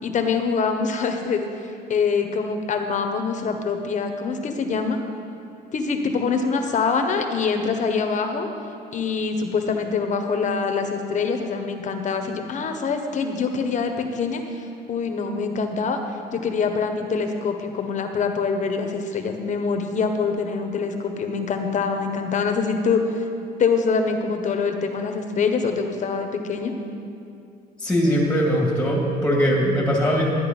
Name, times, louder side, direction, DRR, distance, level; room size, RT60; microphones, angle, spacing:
voice 1, 0.0-5.0 5.7-8.5 8.9-16.0 16.3-23.2 23.6-26.7, left 5 dB, 45° left, 5 dB, 1.3 m, -24 dB
voice 2, 27.8-30.3, equal, 5° left, -2 dB, 2.5 m, -21 dB
13.0 x 10.0 x 5.5 m, 2.6 s
cardioid pair, 110°, 17 cm